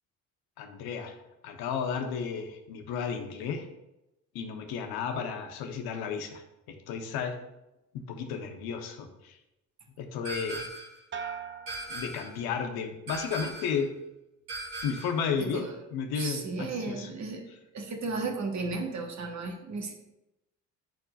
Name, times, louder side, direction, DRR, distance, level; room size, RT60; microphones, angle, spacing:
voice 1, 0.6-1.1 1.4-3.7 4.3-6.4 6.7-7.4 7.9-9.4 10.0-10.7 11.9-13.9 14.8-15.6 15.9-17.1, left 6 dB, 70° left, 5 dB, 1.0 m, -33 dB
sound 1, 10.2-11.0 11.7-12.4 13.1-13.8 14.5-15.2, right 2 dB, 70° right, 1.7 m, -39 dB
sound 2, 11.1-12.8 13.2-13.8, right 6 dB, 30° right, 0.7 m, -42 dB
voice 2, 15.4-15.8 16.1-19.9, right 3 dB, 45° right, 2 dB, 1.4 m, -35 dB
10.5 x 4.5 x 2.5 m, 0.93 s
hypercardioid pair, 50°, 39 cm